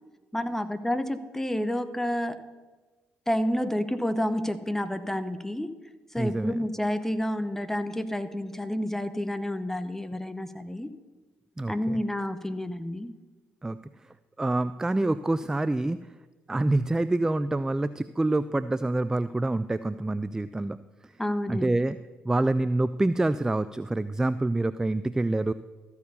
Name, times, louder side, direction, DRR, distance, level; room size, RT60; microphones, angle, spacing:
voice 1, 0.3-2.4 3.3-5.7 6.1-10.9 11.7-13.1 21.2-21.8, left 1 dB, 5° left, 12 dB, 0.9 m, -29 dB
voice 2, 6.2-6.6 11.6-12.0 13.6-13.8 14.4-16.0 16.5-20.8 21.5-22.0 22.2-25.5, right 2 dB, 10° right, 14 dB, 0.3 m, -26 dB
13.5 x 4.7 x 6.9 m, 1.3 s
hypercardioid pair, 55°, 5 cm